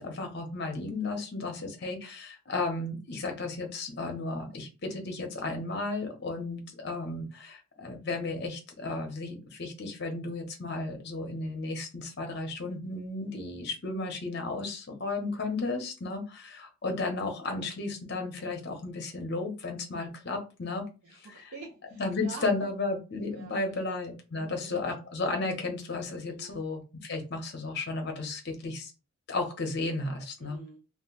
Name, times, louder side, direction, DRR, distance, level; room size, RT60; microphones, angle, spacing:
voice 1, 0.0-20.8 21.2-21.5 22.0-28.9 29.3-30.6, left 3 dB, 50° left, 3 dB, 0.8 m, -34 dB
voice 2, 21.0-22.5 23.3-23.9 24.3-25.0 26.2-26.6 30.4-30.8, right 4 dB, 85° right, -3 dB, 0.6 m, -47 dB
2.4 x 2.1 x 3.8 m, 0.32 s
head